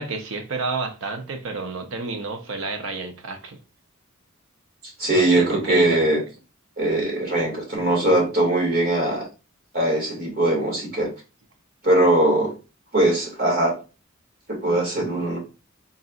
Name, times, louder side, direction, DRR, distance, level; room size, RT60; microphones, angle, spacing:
voice 1, 0.0-3.6 5.1-6.0, right 4 dB, 70° right, 0.7 m, -30 dB
voice 2, 5.0-6.2 6.8-9.2 9.7-11.1 11.8-12.5 12.9-13.7 14.5-15.4, right 1 dB, 45° right, 2.0 m, -21 dB
4.0 x 3.9 x 2.4 m
head